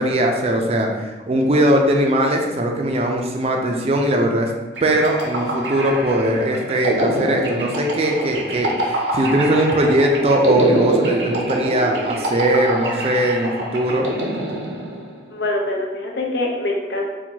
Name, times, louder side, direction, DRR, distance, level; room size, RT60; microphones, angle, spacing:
voice 1, 0.0-4.5 4.8-14.1, right 1 dB, 35° right, 2 dB, 0.4 m, -20 dB
sound 1, 4.8-15.2, right 1 dB, 90° right, 0.6 m, -25 dB
voice 2, 15.3-17.1, left 2 dB, 75° left, 0 dB, 0.6 m, -24 dB
4.4 x 2.2 x 2.7 m, 1.2 s
head